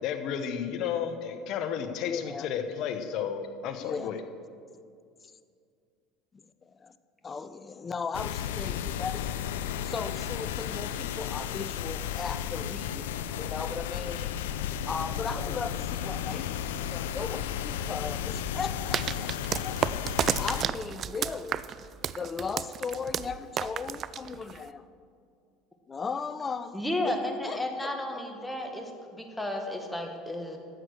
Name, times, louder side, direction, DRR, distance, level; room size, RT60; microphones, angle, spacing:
voice 1, 0.0-4.2, left 8 dB, 60° left, 8 dB, 1.1 m, -32 dB
voice 2, 2.1-2.5 3.8-4.1 6.6-6.9 7.2-9.2 9.8-14.4 14.9-19.8 20.4-21.6 22.1-24.8 25.9-26.8 27.1-27.2 27.4-27.9, left 5 dB, 30° left, 12 dB, 0.7 m, -37 dB
sound 1, 8.1-20.6, left 9 dB, 85° left, 0.5 m, -33 dB
sound 2, 18.9-24.7, right 9 dB, 45° right, 0.4 m, -32 dB
voice 3, 26.7-30.6, left 1 dB, 5° left, 3 dB, 1.8 m, -33 dB
12.5 x 8.0 x 6.3 m, 2.3 s
supercardioid pair, 85°, 0 cm